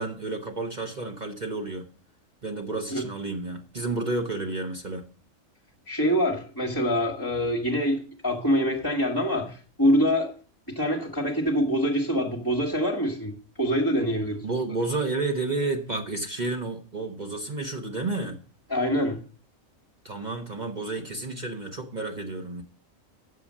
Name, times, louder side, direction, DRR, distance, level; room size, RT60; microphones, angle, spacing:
voice 1, 0.0-1.9 2.4-5.0 14.4-18.4 20.0-22.6, right 3 dB, 35° right, 1.3 m, -31 dB
voice 2, 5.9-10.3 10.7-14.4 18.7-19.2, equal, 15° left, 1.5 m, -25 dB
8.1 x 6.9 x 7.4 m
omnidirectional pair, 1.4 m